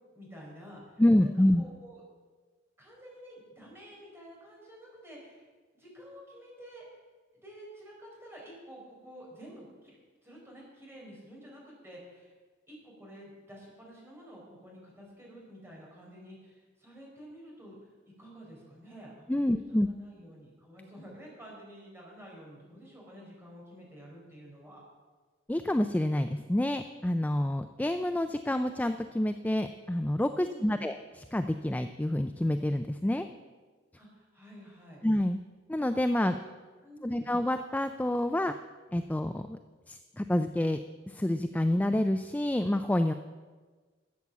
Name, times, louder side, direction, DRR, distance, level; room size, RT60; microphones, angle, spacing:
voice 1, 0.1-2.0 2.8-5.5 5.7-6.8 7.4-10.0 10.2-12.3 12.7-24.8 30.3-30.8 34.0-35.0 36.3-36.5 36.8-37.3, equal, 15° right, -3 dB, 4.7 m, -50 dB
voice 2, 1.0-1.7 19.3-19.9 25.5-33.3 35.0-35.4 35.7-36.4 37.0-38.5 38.9-39.6 39.9-40.8 41.1-43.1, left 1 dB, 10° left, 8 dB, 0.4 m, -28 dB
13.0 x 8.3 x 7.3 m, 1.4 s
head